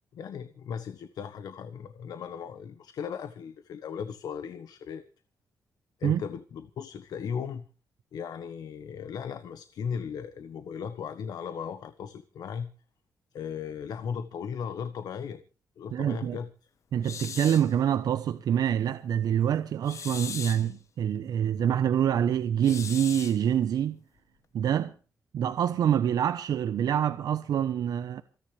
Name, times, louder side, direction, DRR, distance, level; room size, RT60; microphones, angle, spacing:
voice 1, 0.1-5.0 6.0-7.7 8.1-12.7 13.3-15.4 15.8-16.5, left 7 dB, 80° left, 1.3 m, -37 dB
voice 2, 15.9-16.4 16.9-24.0 24.5-24.9 25.3-28.2, right 9 dB, 80° right, 0.9 m, -26 dB
sound 1, 17.0-17.7 19.8-20.7 22.6-23.4, left 7 dB, 50° left, 1.4 m, -39 dB
28.0 x 10.5 x 3.4 m
wide cardioid pair, 160°, 7 cm